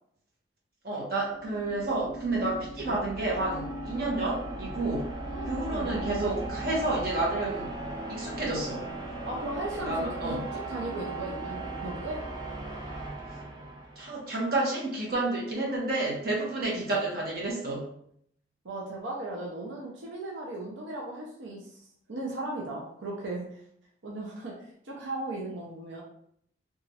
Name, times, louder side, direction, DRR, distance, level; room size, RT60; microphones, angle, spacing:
voice 1, 0.8-5.1 5.4-7.8 8.1-8.9 9.8-10.4 14.0-17.9, right 2 dB, 55° right, -3 dB, 0.9 m, -30 dB
sound 1, 1.2-14.3, right 2 dB, 20° right, 0.5 m, -38 dB
voice 2, 5.3-6.0 9.2-12.2 16.7-16.9 18.6-21.8 22.1-23.5 24.0-24.5 24.8-26.0, right 2 dB, 90° right, -2 dB, 0.6 m, -37 dB
2.9 x 2.4 x 2.8 m, 0.68 s
head